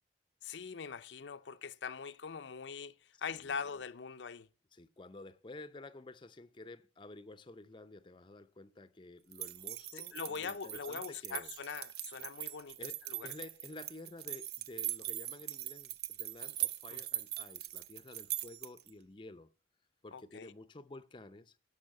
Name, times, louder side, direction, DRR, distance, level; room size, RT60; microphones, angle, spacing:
voice 1, 0.4-4.5 9.9-12.8 13.1-13.3 16.9-17.0 20.1-20.5, left 6 dB, 80° left, 0.5 m, -42 dB
voice 2, 4.7-11.5 12.8-19.5 20.0-21.6, left 2 dB, 25° left, 0.6 m, -51 dB
sound 1, 9.3-18.9, right 13 dB, 60° right, 0.6 m, -41 dB
12.0 x 5.6 x 7.5 m
head